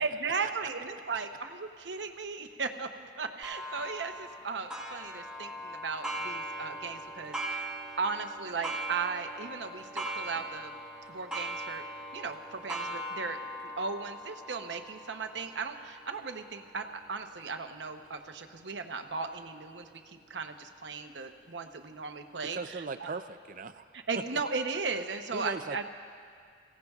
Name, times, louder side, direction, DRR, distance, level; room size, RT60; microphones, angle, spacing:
voice 1, 0.0-10.8 11.1-11.8 12.1-13.4 13.6-23.1 23.9-25.8, right 4 dB, 85° right, 6 dB, 0.8 m, -36 dB
Clock, 3.4-18.7 19.3-19.4 20.0-20.1 21.0-21.1, right 1 dB, 5° right, 1.2 m, -40 dB
voice 2, 22.5-23.8 25.3-25.9, right 3 dB, 50° right, 10 dB, 0.5 m, -38 dB
29.5 x 16.5 x 2.4 m, 2.2 s
head